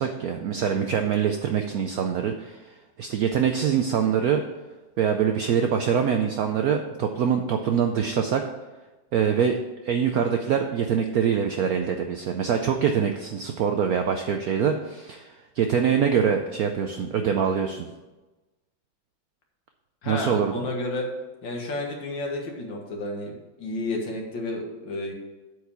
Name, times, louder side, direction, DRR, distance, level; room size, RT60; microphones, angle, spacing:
voice 1, 0.0-2.6 3.0-4.4 5.0-8.4 9.1-9.6 9.8-15.3 15.6-17.9 20.1-20.7, right 7 dB, 75° right, 5 dB, 0.8 m, -24 dB
voice 2, 20.0-21.1 21.4-25.1, left 2 dB, 70° left, 1 dB, 2.1 m, -31 dB
8.2 x 4.8 x 6.9 m, 1.1 s
omnidirectional pair, 2.2 m